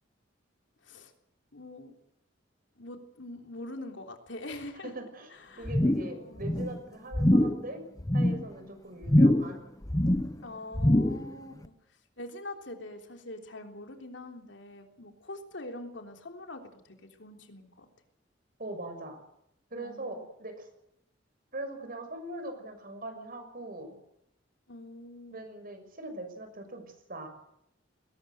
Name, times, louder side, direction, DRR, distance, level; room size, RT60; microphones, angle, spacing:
voice 1, 1.5-1.9 2.7-4.9 5.3-6.5 10.4-11.7 12.2-17.9 19.7-20.2 24.7-25.5, left 2 dB, 70° left, 4 dB, 3.5 m, -44 dB
voice 2, 4.8-5.3 5.6-7.8 8.1-9.6 18.6-19.2 19.7-20.7 21.5-24.0 25.3-26.8 27.1-27.3, right 2 dB, 50° right, 6 dB, 6.2 m, -41 dB
sound 1, 5.7-6.2 6.4-6.8 7.1-7.6 8.0-8.4 9.0-9.6 9.8-10.4 10.7-11.3 11.6-11.7, left 1 dB, 20° left, 0.9 m, -24 dB
21.0 x 19.0 x 8.0 m, 0.78 s
head